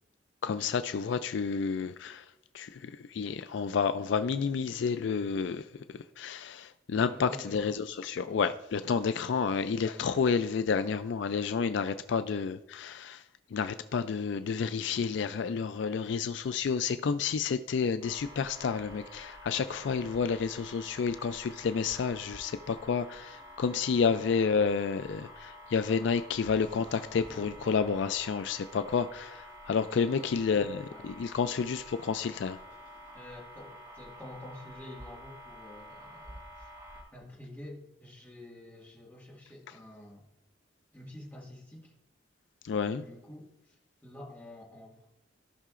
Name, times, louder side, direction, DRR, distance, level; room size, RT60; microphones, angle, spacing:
voice 1, 0.4-2.2 2.5-13.2 13.5-32.6 42.6-43.1, left 6 dB, 65° left, 0.3 m, -30 dB
voice 2, 7.1-7.6 8.1-8.4 30.1-31.1 31.4-31.5 33.1-36.7 37.1-40.3 40.9-41.9 42.9-45.1, left 1 dB, 10° left, 1.8 m, -49 dB
sound 1, 18.0-37.0, equal, 20° right, 1.8 m, -49 dB
15.5 x 5.7 x 2.5 m
head